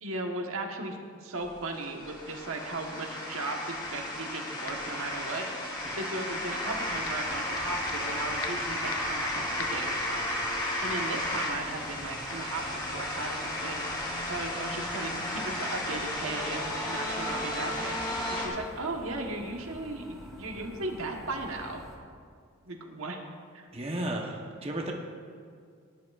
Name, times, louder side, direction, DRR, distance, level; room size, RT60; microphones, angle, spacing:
voice 1, 0.0-5.4 6.0-10.2 10.8-21.8 22.6-23.2 23.5-23.6, right 2 dB, 80° right, 2 dB, 1.3 m, -37 dB
sound 1, 1.4-18.5, left 1 dB, 20° left, 1.7 m, -33 dB
sound 2, 4.7-5.0 5.4-6.6 7.0-8.1 8.4-9.2 9.6-9.9 10.4-10.6 10.9-11.2 11.4-11.7 12.3-12.4, left 6 dB, 75° left, 0.9 m, -45 dB
sound 3, 6.7-22.0, equal, ahead, 1.5 m, -49 dB
voice 2, 23.7-24.9, right 1 dB, 30° right, 0 dB, 1.0 m, -34 dB
17.0 x 10.5 x 2.5 m, 2.1 s
head